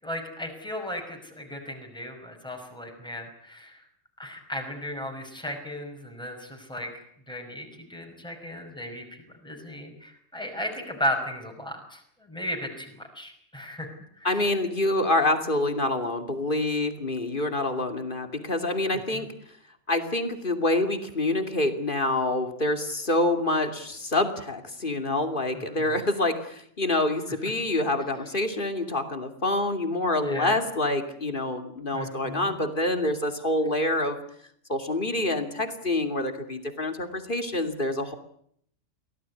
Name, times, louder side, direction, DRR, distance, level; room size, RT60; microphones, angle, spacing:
voice 1, 0.0-3.8 4.2-6.9 7.3-13.9 14.2-14.5 19.1-19.2 25.5-26.0 30.2-30.5 31.9-32.5, equal, 5° left, 1 dB, 5.5 m, -35 dB
voice 2, 14.2-19.3 19.9-34.2 34.7-38.1, left 2 dB, 40° left, 7 dB, 2.8 m, -26 dB
24.0 x 17.0 x 9.7 m, 0.67 s
omnidirectional pair, 1.3 m